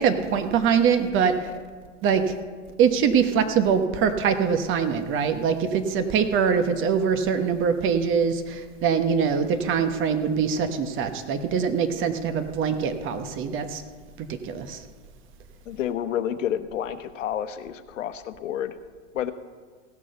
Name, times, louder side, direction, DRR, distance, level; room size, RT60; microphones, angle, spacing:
voice 1, 0.0-1.4 2.0-2.3 2.8-13.8 14.2-14.8, right 6 dB, 30° right, 8 dB, 1.1 m, -23 dB
voice 2, 15.7-18.7 19.1-19.3, left 10 dB, 80° left, 11 dB, 0.9 m, -29 dB
16.5 x 6.2 x 6.7 m, 1.5 s
hypercardioid pair, 120°, 38 cm